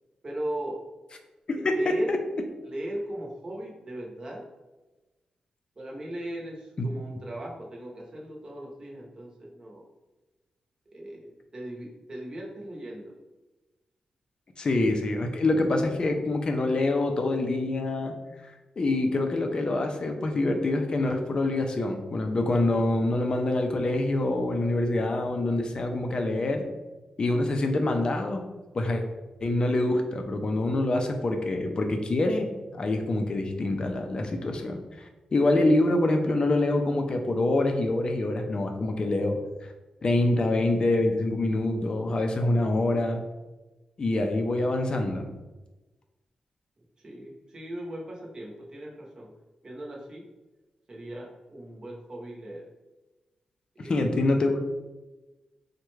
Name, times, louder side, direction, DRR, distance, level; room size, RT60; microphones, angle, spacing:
voice 1, 0.2-0.8 1.5-2.1 2.6-4.4 5.8-9.8 10.9-13.2 47.0-49.3 49.6-50.3 50.9-52.6 53.7-54.3, right 1 dB, 35° right, -2 dB, 0.7 m, -38 dB
voice 2, 1.5-2.2 6.8-6.9 14.6-18.1 18.8-26.6 27.2-28.4 28.7-29.0 29.4-39.4 40.0-43.2 44.0-45.3 53.8-54.6, left 2 dB, 40° left, 4 dB, 0.4 m, -25 dB
3.4 x 2.2 x 3.1 m, 1.1 s
wide cardioid pair, 125°, 2 cm